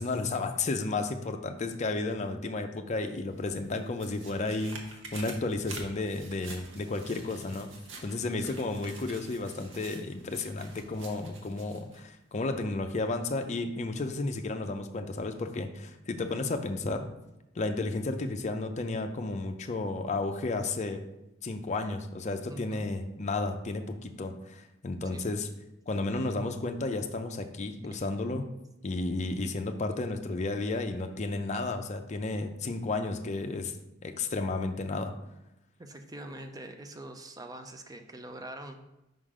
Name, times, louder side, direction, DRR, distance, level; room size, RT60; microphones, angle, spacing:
voice 1, 0.0-7.7 8.0-17.1 17.5-21.0 21.4-25.5 25.9-28.5 28.8-33.7 34.0-35.1, left 3 dB, 35° left, 6 dB, 0.5 m, -32 dB
sound 1, 3.3-12.0 12.4-12.5, right 3 dB, 80° right, 1.0 m, -48 dB
voice 2, 22.5-22.9 25.1-25.3 35.8-38.8, right 1 dB, 20° right, 6 dB, 0.5 m, -44 dB
5.4 x 3.8 x 4.9 m, 0.92 s
head